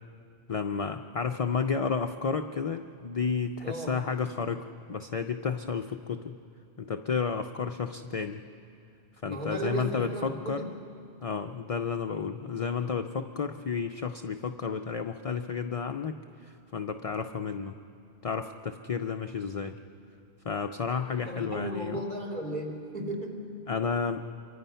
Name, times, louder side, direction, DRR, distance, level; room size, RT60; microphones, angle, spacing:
voice 1, 0.5-6.4 6.8-8.4 9.2-10.6 11.2-16.2 16.4-17.7 18.2-19.7 20.4-22.0 23.7-24.2, left 5 dB, 40° left, 6 dB, 0.5 m, -31 dB
voice 2, 3.6-4.1 9.2-10.7 21.1-23.5, right 1 dB, 45° right, 0 dB, 3.5 m, -35 dB
27.0 x 24.0 x 5.6 m, 2.5 s
omnidirectional pair, 1.1 m